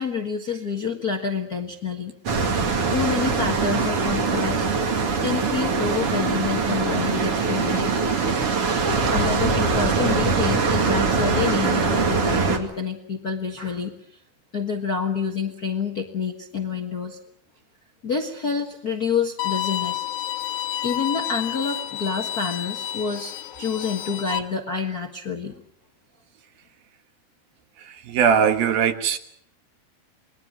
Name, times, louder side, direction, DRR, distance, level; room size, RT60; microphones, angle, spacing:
voice 1, 0.0-2.2 2.5-4.7 5.2-7.9 9.1-13.9 14.5-17.2 18.0-20.1 20.8-23.3 23.6-25.6, left 5 dB, 55° left, 3 dB, 1.0 m, -28 dB
sound 1, 2.3-12.6, right 4 dB, 40° right, 2.8 m, -22 dB
Bowed string instrument, 19.4-24.4, left 13 dB, 70° left, 2.9 m, -30 dB
voice 2, 27.8-29.2, right 7 dB, 70° right, 7 dB, 3.2 m, -21 dB
28.5 x 21.0 x 6.3 m, 0.65 s
omnidirectional pair, 4.5 m